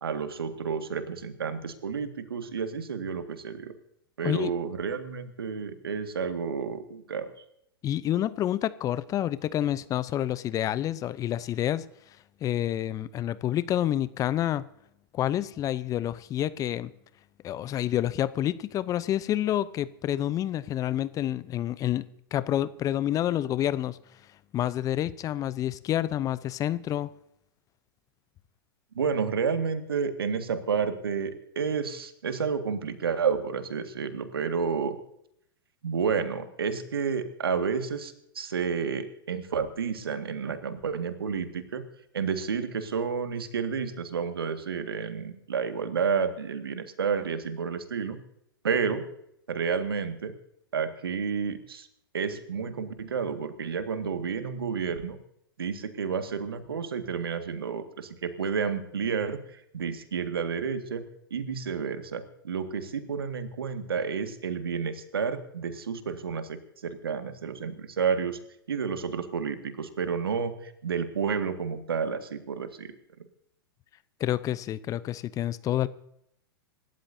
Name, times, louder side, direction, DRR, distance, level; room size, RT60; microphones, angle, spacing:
voice 1, 0.0-3.7 4.2-7.3 28.9-35.0 35.8-41.8 42.1-48.2 48.6-49.1 49.5-50.3 50.7-51.9 52.1-55.2 55.6-61.0 61.3-68.4 68.7-72.9, right 6 dB, 80° right, 1.9 m, -30 dB
voice 2, 7.8-11.8 12.4-14.6 15.1-16.9 17.4-24.0 24.5-27.1 74.2-75.9, left 12 dB, 30° left, 0.7 m, -28 dB
26.0 x 13.0 x 2.7 m
hypercardioid pair, 105°, 12 cm